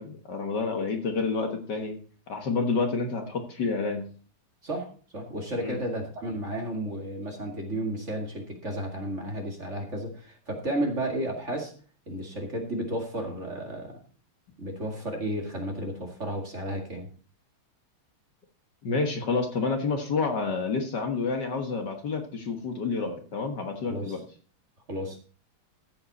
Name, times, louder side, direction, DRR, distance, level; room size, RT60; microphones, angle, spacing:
voice 1, 0.0-2.0 2.3-4.1 5.6-5.8 18.8-24.2, left 4 dB, 55° left, 4 dB, 1.9 m, -29 dB
voice 2, 4.6-11.7 12.1-14.0 14.6-17.1 23.9-24.2 24.9-25.2, right 1 dB, 35° right, 2 dB, 2.3 m, -33 dB
14.0 x 7.8 x 4.2 m, 0.41 s
omnidirectional pair, 2.4 m